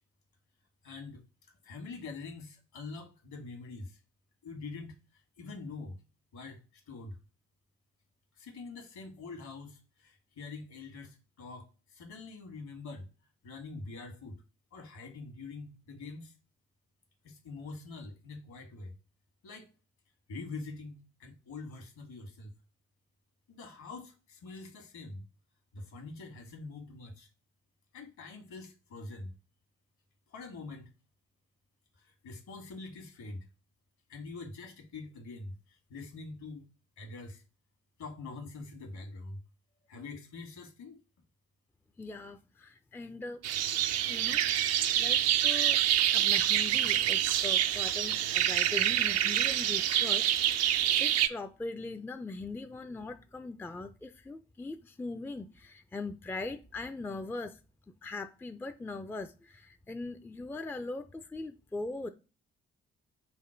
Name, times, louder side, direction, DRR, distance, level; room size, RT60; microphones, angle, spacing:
voice 1, 0.8-1.2 1.6-4.0 4.4-6.0 6.3-7.2 8.3-13.1 13.4-14.4 14.7-16.3 17.2-18.9 19.4-19.7 20.3-22.5 23.5-25.2 25.7-27.3 27.9-29.3 30.3-30.9 31.9-33.5 34.1-36.7 37.0-37.4 38.0-39.4 39.9-41.0, left 3 dB, 60° left, 1.6 m, -45 dB
voice 2, 42.0-43.4 43.8-45.8 46.1-57.6 58.0-62.1, left 3 dB, 5° left, 0.4 m, -41 dB
sound 1, 43.4-51.3, right 11 dB, 50° right, 0.5 m, -27 dB
5.1 x 2.1 x 4.4 m
figure-of-eight pair, 40°, 32 cm